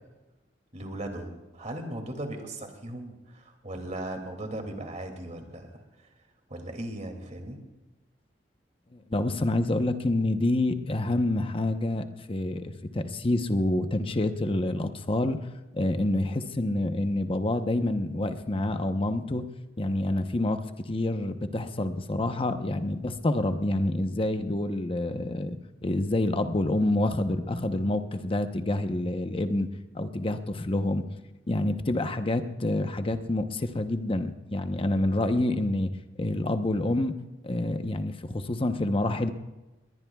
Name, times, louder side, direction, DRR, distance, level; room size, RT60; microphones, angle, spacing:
voice 1, 0.7-5.8 6.5-7.6, right 1 dB, 40° right, 4 dB, 2.5 m, -37 dB
voice 2, 8.9-15.4 15.7-19.4 19.8-20.6 20.9-25.6 25.8-29.7 29.9-31.0 31.5-35.9 36.2-37.1 37.4-39.3, left 1 dB, 30° left, 8 dB, 0.9 m, -27 dB
22.0 x 19.5 x 2.3 m, 1.1 s
head